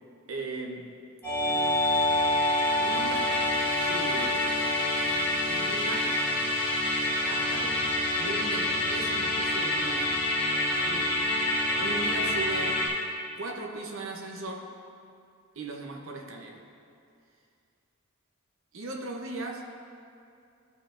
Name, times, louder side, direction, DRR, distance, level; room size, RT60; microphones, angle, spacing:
voice 1, 0.3-0.9 2.8-3.4 3.8-4.5 5.5-6.2 7.3-7.9 8.1-10.3 10.8-12.8 13.4-14.7 15.6-16.6 18.7-19.6, right 2 dB, 60° right, 1 dB, 0.8 m, -38 dB
Musical instrument, 1.2-12.9, left 1 dB, 10° left, 1.4 m, -27 dB
13.5 x 4.9 x 2.5 m, 2.4 s
head